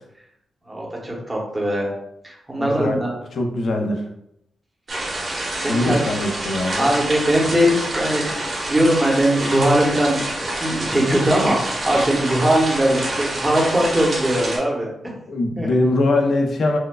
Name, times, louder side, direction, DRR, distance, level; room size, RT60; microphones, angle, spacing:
voice 1, 0.7-1.9 2.2-3.1 5.0-5.2 5.6-6.0 6.8-14.9 15.6-15.7, right 1 dB, 15° right, -2 dB, 0.8 m, -20 dB
voice 2, 2.6-3.0 3.3-4.0 5.7-6.9 15.3-16.8, left 2 dB, 60° left, 2 dB, 0.5 m, -21 dB
sound 1, 4.9-14.6, right 1 dB, 45° right, 1.1 m, -27 dB
4.3 x 2.3 x 2.2 m, 0.77 s
wide cardioid pair, 140°, 0 cm